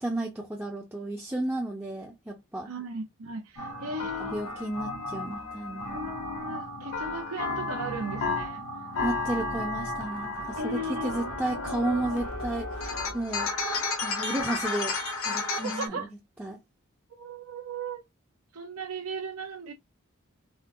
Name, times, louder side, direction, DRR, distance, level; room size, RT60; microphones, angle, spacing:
voice 1, 0.0-2.7 4.2-6.0 9.0-13.5 14.0-15.0 15.2-16.1 16.4-16.6, right 1 dB, 10° right, 0.4 m, -33 dB
voice 2, 2.6-4.5 5.9-8.6 10.6-11.2 15.6-16.1 17.1-18.1 18.5-19.7, right 2 dB, 80° right, 0.6 m, -36 dB
sound 1, 3.6-15.9, left 2 dB, 75° left, 1.0 m, -33 dB
3.6 x 2.1 x 2.6 m
head